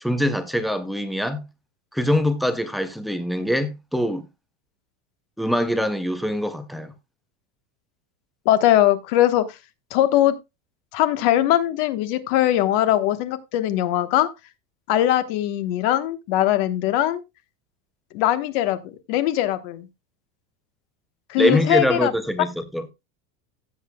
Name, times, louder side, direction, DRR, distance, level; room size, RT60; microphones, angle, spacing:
voice 1, 0.0-1.5 1.9-4.3 5.4-6.9 21.4-22.9, equal, ahead, 0.5 m, -23 dB
voice 2, 8.4-9.5 9.9-10.4 10.9-14.3 14.9-17.2 18.1-18.8 19.1-19.9 21.3-22.1, left 13 dB, 50° left, 1.2 m, -20 dB
15.5 x 7.8 x 2.2 m
supercardioid pair, 175°, 36 cm